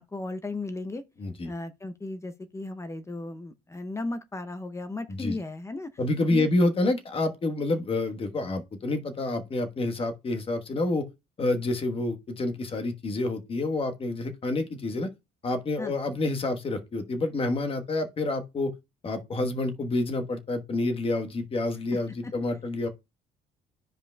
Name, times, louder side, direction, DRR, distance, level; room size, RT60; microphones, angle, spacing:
voice 1, 0.0-1.0 1.4-5.9 6.3-6.5 15.8-15.9 21.9-22.3, left 2 dB, 15° left, 0.6 m, -35 dB
voice 2, 1.2-1.5 5.1-5.4 6.0-11.1 11.4-15.1 15.4-18.7 19.0-22.9, left 2 dB, 35° left, 1.2 m, -28 dB
12.0 x 5.0 x 2.2 m
cardioid pair, 110°, 17 cm